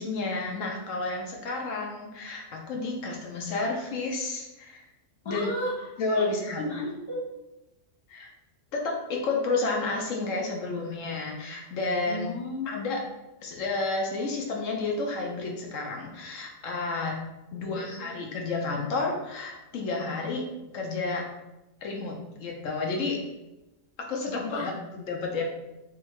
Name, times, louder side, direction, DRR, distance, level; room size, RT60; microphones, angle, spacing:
voice 1, 0.0-4.8 5.2-5.5 6.0-6.6 8.1-8.3 8.7-12.3 12.7-13.0 13.4-17.2 17.5-20.5 20.7-21.2 21.8-23.2 24.0-25.4, left 3 dB, 75° left, 0 dB, 1.1 m, -31 dB
voice 2, 5.2-5.7 6.1-6.3 6.6-7.2 12.0-12.9 17.5-18.2 24.5-24.7, left 1 dB, 25° left, -5 dB, 1.0 m, -34 dB
3.6 x 2.6 x 4.5 m, 0.97 s
omnidirectional pair, 1.3 m